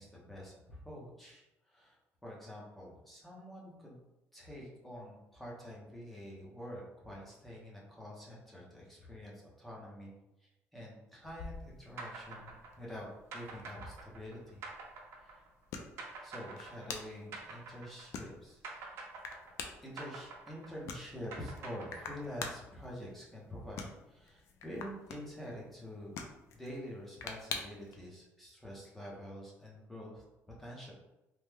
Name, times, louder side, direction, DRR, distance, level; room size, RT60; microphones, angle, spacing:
voice 1, 0.0-4.0 4.3-10.1 10.4-13.1 13.3-14.6 15.2-15.4 16.2-18.8 19.8-26.2 26.5-30.2 30.6-30.9, equal, 5° left, -4 dB, 0.7 m, -47 dB
sound 1, 11.2-28.0, left 5 dB, 70° left, 0.4 m, -48 dB
Don Gorgon (Efx), 12.0-18.3 18.6-22.5, right 3 dB, 60° right, 0.6 m, -47 dB
3.0 x 2.1 x 3.3 m, 0.96 s
cardioid pair, 160°, 5 cm